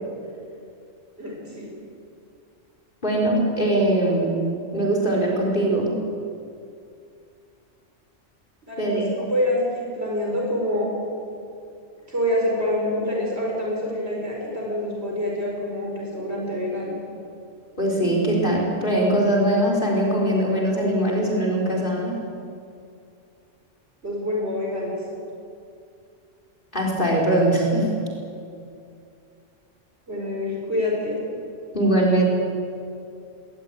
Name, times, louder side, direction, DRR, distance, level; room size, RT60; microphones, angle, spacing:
voice 1, 1.2-1.7 8.6-10.9 12.1-17.0 24.0-25.0 30.1-31.2, left 1 dB, 55° right, -3 dB, 5.2 m, -26 dB
voice 2, 3.0-4.4 4.7-5.9 8.8-9.3 17.8-22.2 26.7-27.9 31.7-32.2, right 1 dB, 40° left, -1 dB, 4.3 m, -21 dB
20.5 x 20.0 x 9.5 m, 2.5 s
omnidirectional pair, 1.3 m